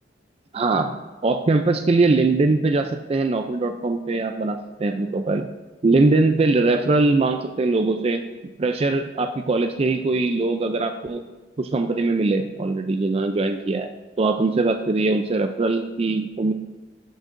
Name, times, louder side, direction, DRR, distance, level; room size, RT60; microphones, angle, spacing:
voice 1, 0.5-5.5 5.8-8.2 8.6-11.2 11.6-13.9 14.2-16.5, right 3 dB, 35° right, 6 dB, 0.4 m, -21 dB
13.0 x 6.3 x 2.6 m, 1.2 s
head